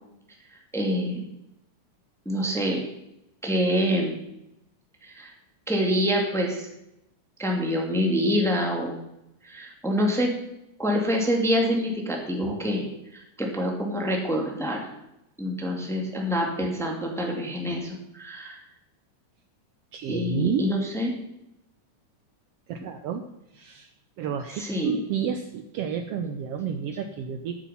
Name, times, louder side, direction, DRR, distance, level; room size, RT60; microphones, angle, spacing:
voice 1, 0.7-1.3 2.2-2.8 3.4-4.2 5.0-5.3 5.7-6.7 7.4-8.9 9.4-10.3 10.8-12.9 13.1-14.9 15.4-18.6 20.1-21.1 22.8-22.9 24.6-25.0, equal, ahead, 0 dB, 1.5 m, -26 dB
voice 2, 19.9-20.7 22.7-23.2 23.5-23.9 24.2-27.5, right 7 dB, 85° right, 6 dB, 1.3 m, -30 dB
11.0 x 8.9 x 5.6 m, 0.84 s
omnidirectional pair, 3.7 m